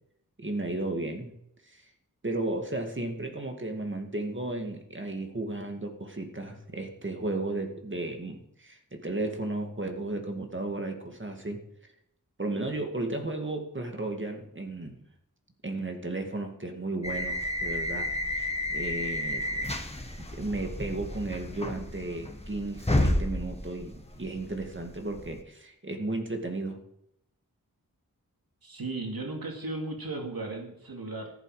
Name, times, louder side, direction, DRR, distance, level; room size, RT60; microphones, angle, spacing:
voice 1, 0.4-1.3 1.7-1.8 2.2-11.6 12.4-15.0 15.6-19.6 20.2-26.8, right 2 dB, 35° right, 4 dB, 2.2 m, -34 dB
sound 1, 17.0-25.4, left 1 dB, 20° left, 1.7 m, -31 dB
voice 2, 28.6-31.3, right 2 dB, 90° right, 1 dB, 2.6 m, -36 dB
14.5 x 11.0 x 5.0 m, 0.78 s
wide cardioid pair, 80°, 35 cm